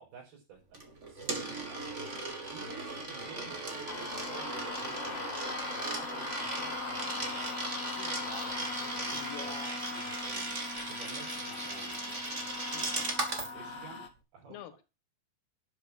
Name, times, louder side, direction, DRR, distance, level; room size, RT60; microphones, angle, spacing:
voice 1, 0.0-2.1 2.5-5.4 5.6-7.6 7.9-9.6 9.9-10.6 10.9-12.0 12.3-13.1 13.5-14.1 14.3-14.6, right 6 dB, 75° right, -4 dB, 7.1 m, -51 dB
Coin (dropping), 0.7-13.5, right 2 dB, 20° right, 2.2 m, -37 dB
voice 2, 3.4-4.1 6.6-6.8 9.1-9.8 14.5-14.8, left 11 dB, 90° left, 12 dB, 3.5 m, -47 dB
sound 1, 3.9-14.1, left 5 dB, 50° left, 2.7 m, -41 dB
12.0 x 7.0 x 6.3 m, 0.29 s
omnidirectional pair, 4.4 m